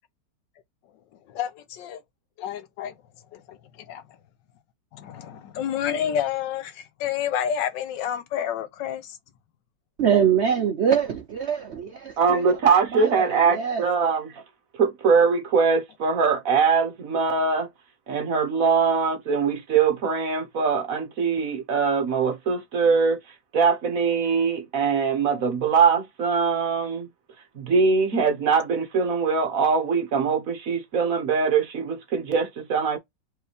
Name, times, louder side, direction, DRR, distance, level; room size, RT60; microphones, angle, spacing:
voice 1, 1.3-2.0 2.4-2.9 3.3-4.0 4.9-9.2, left 9 dB, 75° left, 1.4 m, -29 dB
voice 2, 10.0-12.4 12.9-13.8, right 8 dB, 75° right, 0.6 m, -24 dB
voice 3, 12.2-14.4 14.8-17.7 18.1-27.1 27.5-33.0, right 5 dB, 50° right, 1.3 m, -22 dB
4.6 x 3.2 x 3.4 m
omnidirectional pair, 2.0 m